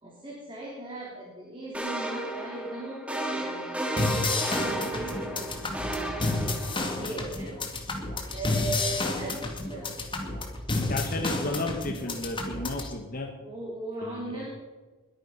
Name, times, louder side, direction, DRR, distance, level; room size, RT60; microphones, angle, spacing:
voice 1, 0.0-5.6 6.2-7.5 8.3-10.1 13.4-14.5, right 1 dB, 20° right, -4 dB, 3.5 m, -38 dB
sound 1, 1.7-7.1, right 1 dB, 5° right, 2.2 m, -33 dB
sound 2, 4.0-12.9, left 2 dB, 20° left, 2.2 m, -31 dB
voice 2, 10.8-13.3 14.0-14.5, left 2 dB, 40° left, 1 dB, 1.5 m, -33 dB
22.0 x 9.4 x 5.7 m, 1.3 s
head